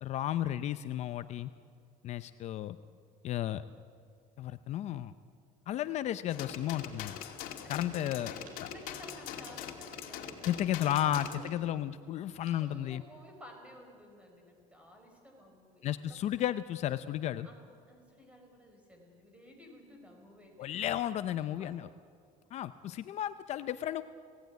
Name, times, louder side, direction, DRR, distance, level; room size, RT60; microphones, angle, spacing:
voice 1, 0.0-1.5 2.0-2.8 3.2-3.6 4.4-5.1 5.7-7.2 7.7-8.3 10.5-13.0 15.8-17.5 20.6-21.9 22.5-24.0, left 12 dB, 50° left, 12 dB, 0.5 m, -33 dB
sound 1, 6.3-11.4, left 9 dB, 75° left, 2.3 m, -43 dB
voice 2, 8.0-11.9 12.6-16.2 17.4-21.8, left 1 dB, 10° right, 2 dB, 4.7 m, -54 dB
sound 2, 8.4-8.7 9.4-9.8 10.4-10.7 11.4-11.7 12.4-12.8, right 4 dB, 70° right, 4.9 m, -59 dB
29.5 x 17.5 x 9.3 m, 2.4 s
cardioid pair, 165°, 15 cm